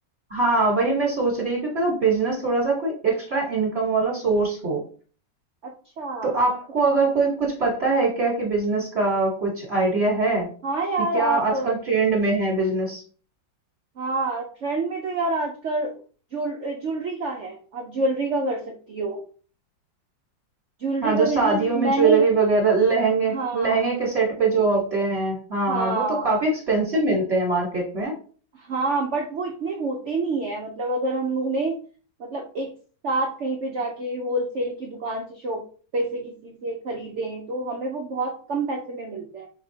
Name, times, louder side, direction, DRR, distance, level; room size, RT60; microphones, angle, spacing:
voice 1, 0.3-4.8 6.2-10.5 11.1-13.0 21.0-28.1, right 3 dB, 40° right, -4 dB, 1.4 m, -22 dB
voice 2, 5.6-6.4 10.6-11.7 14.0-15.9 16.3-19.2 20.8-22.3 23.3-23.8 25.7-26.3 28.5-31.8 32.2-32.7 33.0-35.6 35.9-39.5, right 2 dB, 80° right, 1 dB, 0.6 m, -27 dB
5.1 x 3.4 x 2.8 m, 0.41 s
omnidirectional pair, 2.0 m